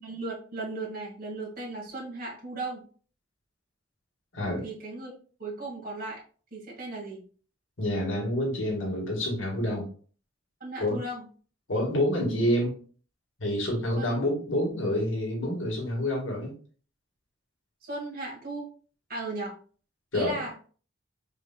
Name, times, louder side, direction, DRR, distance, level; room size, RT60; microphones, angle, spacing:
voice 1, 0.0-2.8 4.6-5.1 5.4-6.2 6.5-7.2 10.6-11.3 14.0-14.1 17.9-18.7 19.1-19.5 20.1-20.5, right 2 dB, 50° right, -4 dB, 2.0 m, -36 dB
voice 2, 4.3-4.7 7.8-9.9 10.8-11.0 11.7-12.8 13.4-16.5 20.1-20.4, left 1 dB, 75° left, -2 dB, 1.7 m, -28 dB
4.8 x 4.0 x 2.3 m, 0.42 s
head